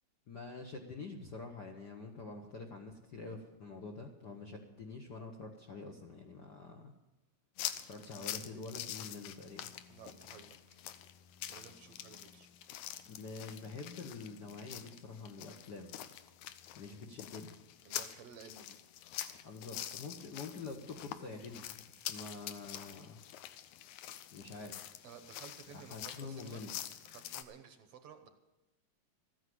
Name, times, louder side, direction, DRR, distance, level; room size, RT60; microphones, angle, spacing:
voice 1, 0.3-6.9 7.9-9.7 13.0-15.9 16.8-17.5 19.4-23.2 24.3-24.8 25.7-26.7, left 3 dB, 55° left, 2 dB, 1.2 m, -46 dB
sound 1, 7.6-27.4, left 12 dB, 85° left, 2.2 m, -46 dB
voice 2, 9.9-10.8 11.5-12.5 17.8-18.8 25.0-26.6 27.1-28.3, right 7 dB, 65° right, 8 dB, 1.8 m, -54 dB
14.0 x 9.7 x 7.8 m, 1.0 s
omnidirectional pair, 3.3 m